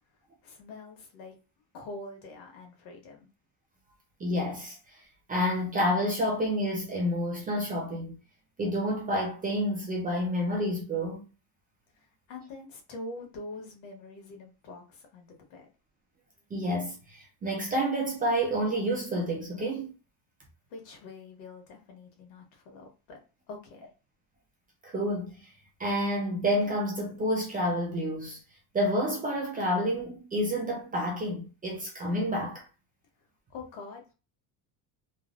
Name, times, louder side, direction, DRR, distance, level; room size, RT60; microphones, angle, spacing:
voice 1, 0.4-1.3 1.7-3.3 11.9-15.7 20.7-23.2 23.5-23.9 33.5-34.1, left 2 dB, 80° left, 1.3 m, -44 dB
voice 2, 4.2-5.0 5.3-8.2 8.6-11.2 16.5-19.9 24.8-25.5 25.8-28.4 28.7-32.6, equal, 20° right, 0.4 m, -29 dB
3.2 x 2.0 x 2.4 m
cardioid pair, 175°, 47 cm